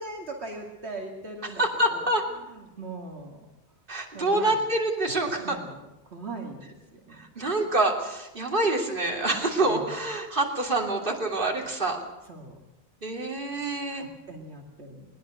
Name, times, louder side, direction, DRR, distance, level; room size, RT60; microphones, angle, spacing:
voice 1, 0.0-1.6 1.9-2.1 2.5-3.4 4.1-4.6 5.4-5.8 6.1-6.7 7.1-7.2 9.6-9.9 12.3-12.5 13.9-15.1, right 2 dB, 75° right, 1 dB, 2.7 m, -39 dB
voice 2, 1.4-2.2 3.9-5.6 7.2-12.0 13.0-14.0, right 2 dB, 50° right, 1 dB, 3.2 m, -26 dB
21.5 x 19.5 x 6.5 m, 0.94 s
omnidirectional pair, 1.1 m